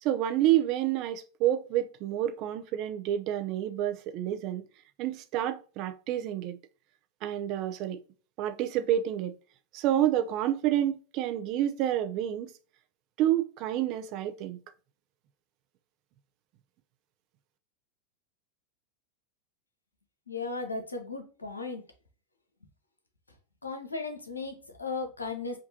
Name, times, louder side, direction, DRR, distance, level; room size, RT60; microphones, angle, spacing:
voice 1, 0.0-4.6 5.0-6.6 7.2-8.0 8.4-9.3 9.7-12.5 13.2-14.6, right 12 dB, 50° right, 0.6 m, -29 dB
voice 2, 20.3-21.8 23.6-25.6, left 3 dB, 90° left, 0.9 m, -36 dB
5.1 x 2.6 x 2.7 m
figure-of-eight pair, 90°, 0 cm